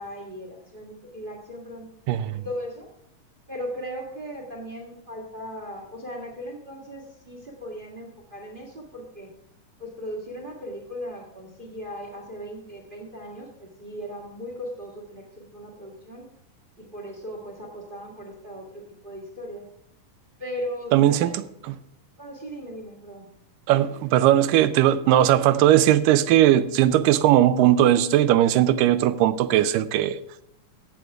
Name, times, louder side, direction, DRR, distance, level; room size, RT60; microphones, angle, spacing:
voice 1, 0.0-1.9 2.3-2.9 3.5-9.3 9.8-16.3 16.8-19.7 20.4-21.4 22.2-23.3, equal, 35° right, 0.8 m, -37 dB
voice 2, 2.1-2.4 20.9-21.8 23.7-30.2, right 12 dB, 85° right, 2.2 m, -19 dB
15.0 x 7.8 x 3.5 m
omnidirectional pair, 3.8 m